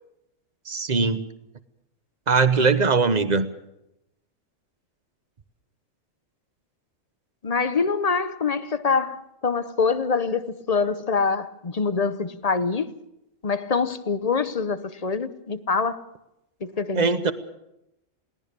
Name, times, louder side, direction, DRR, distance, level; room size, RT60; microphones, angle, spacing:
voice 1, 0.7-1.2 2.3-3.5 16.9-17.3, right 4 dB, 35° right, 1.1 m, -20 dB
voice 2, 7.4-13.0 13.4-16.0 16.6-17.1, left 5 dB, 35° left, 0.8 m, -25 dB
21.5 x 18.0 x 6.8 m
omnidirectional pair, 1.4 m